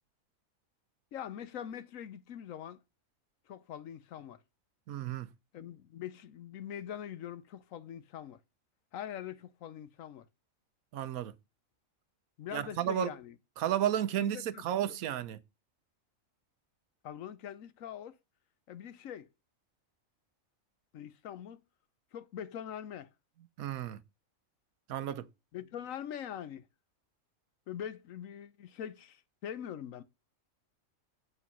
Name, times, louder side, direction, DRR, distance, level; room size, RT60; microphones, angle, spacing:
voice 1, 1.1-2.8 3.5-4.4 5.5-8.4 8.9-10.3 12.4-13.4 14.2-15.0 17.0-18.2 18.7-19.3 20.9-21.6 22.1-23.1 25.5-26.7 27.7-30.0, left 9 dB, 75° left, 1.1 m, -43 dB
voice 2, 4.9-5.3 10.9-11.3 12.5-13.1 13.6-15.4 23.6-24.0 24.9-25.3, right 10 dB, 90° right, 1.2 m, -32 dB
8.1 x 5.0 x 5.4 m
omnidirectional pair, 1.4 m